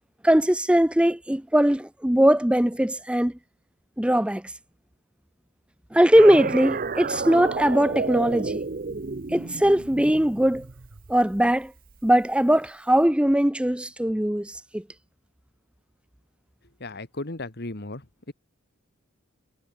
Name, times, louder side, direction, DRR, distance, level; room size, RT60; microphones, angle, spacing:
voice 1, 0.2-3.3 4.0-4.4 5.9-8.6 9.3-10.6 11.1-11.7 12.0-14.8, right 1 dB, 5° right, 0.6 m, -20 dB
sound 1, 6.2-11.5, right 4 dB, 40° right, 0.7 m, -31 dB
voice 2, 16.8-18.0, left 2 dB, 50° left, 1.7 m, -35 dB
head